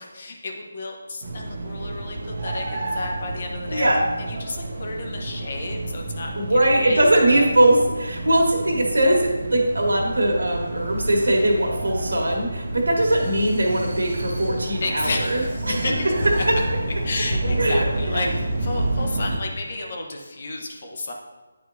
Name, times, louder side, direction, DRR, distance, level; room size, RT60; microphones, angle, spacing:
voice 1, 0.0-3.9 4.2-7.0 7.3-7.5 14.8-16.1 17.0-21.1, left 2 dB, 45° left, 1 dB, 1.1 m, -32 dB
sound 1, 1.2-19.4, right 1 dB, 45° right, 1.1 m, -29 dB
voice 2, 3.7-4.0 6.3-15.9 16.5-16.6 17.6-18.3, right 1 dB, 80° right, 0 dB, 1.7 m, -21 dB
9.6 x 4.4 x 2.8 m, 1.3 s
figure-of-eight pair, 160°, 0 cm